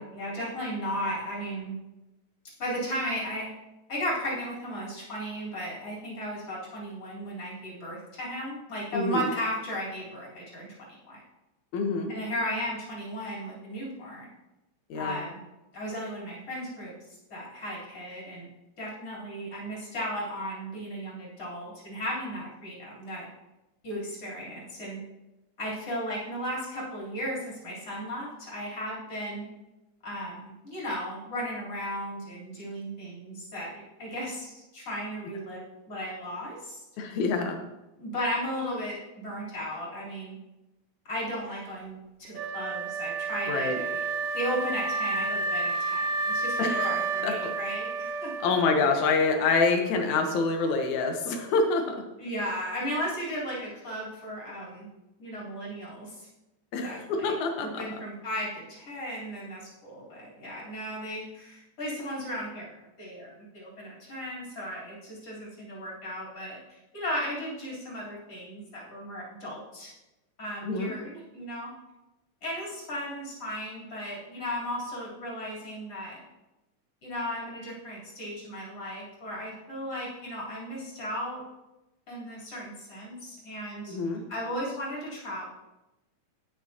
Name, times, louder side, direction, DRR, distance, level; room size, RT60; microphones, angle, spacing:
voice 1, 0.0-1.8 2.6-3.5 3.9-10.7 11.1-11.2 12.1-14.3 14.9-15.4 15.7-16.9 17.3-18.5 18.8-23.3 23.8-25.0 25.6-29.4 30.0-36.8 38.0-40.4 41.0-44.1 44.3-48.5 52.2-54.9 55.2-56.3 56.8-57.3 57.6-66.6 66.9-69.9 70.4-71.7 72.4-76.2 77.0-81.4 82.1-83.9 84.3-85.5, equal, 50° left, -7 dB, 4.5 m, -35 dB
voice 2, 8.9-9.3 11.7-12.1 14.9-15.2 37.0-37.6 43.5-43.8 46.6-47.5 48.4-52.0 56.7-57.8 70.6-70.9 83.9-84.2, left 4 dB, 75° left, 3 dB, 2.4 m, -26 dB
Wind instrument woodwind instrument, 42.3-49.4, right 4 dB, 75° right, 1.4 m, -31 dB
18.0 x 6.1 x 2.9 m, 0.99 s
omnidirectional pair, 3.4 m